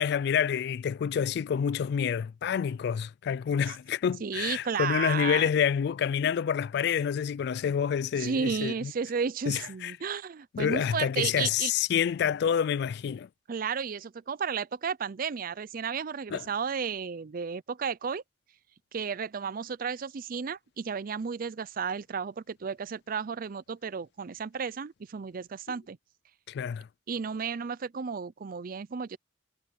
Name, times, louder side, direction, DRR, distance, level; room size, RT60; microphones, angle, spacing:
voice 1, 0.0-8.9 9.5-9.9 10.5-13.3 16.3-16.5 26.5-26.9, left 8 dB, 60° left, 0.3 m, -28 dB
voice 2, 4.2-5.5 8.2-11.7 13.5-18.2 18.9-26.0 27.1-29.2, right 6 dB, 50° right, 0.5 m, -33 dB
head